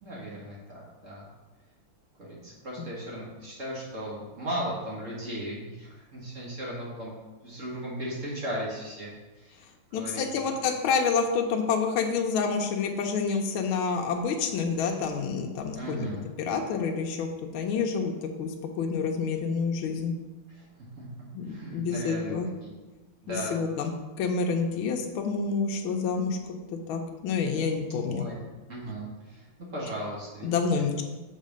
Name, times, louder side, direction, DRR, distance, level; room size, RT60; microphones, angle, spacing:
voice 1, 0.0-1.3 2.2-7.1 7.4-9.1 9.4-9.6 9.9-10.2 15.8-16.2 20.6-20.7 21.0-21.1 21.5-22.3 23.2-23.6 28.0-28.4 28.7-29.4 29.7-30.5, right 1 dB, 40° right, -5 dB, 1.8 m, -36 dB
voice 2, 9.9-16.1 16.4-20.1 21.3-22.5 23.3-23.9 24.2-26.4 26.9-28.2 30.4-31.0, left 5 dB, 80° left, 2 dB, 1.5 m, -28 dB
6.4 x 4.2 x 5.2 m, 1.2 s
omnidirectional pair, 2.3 m